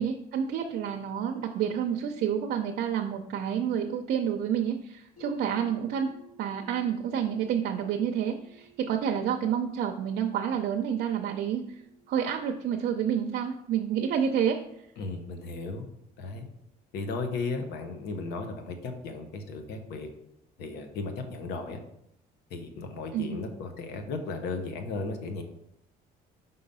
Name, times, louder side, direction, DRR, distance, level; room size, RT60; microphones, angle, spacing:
voice 1, 0.0-6.1 6.4-11.8 12.1-14.6 23.1-23.4, right 8 dB, 70° right, 3 dB, 0.6 m, -29 dB
voice 2, 15.0-15.9 16.2-16.4 16.9-20.1 20.6-21.8 22.5-25.4, left 3 dB, 85° left, 6 dB, 1.1 m, -35 dB
sound 1, 16.7-17.1, right 5 dB, 35° left, 2.3 m, -59 dB
5.5 x 3.9 x 5.4 m, 0.77 s
cardioid pair, 110°, 17 cm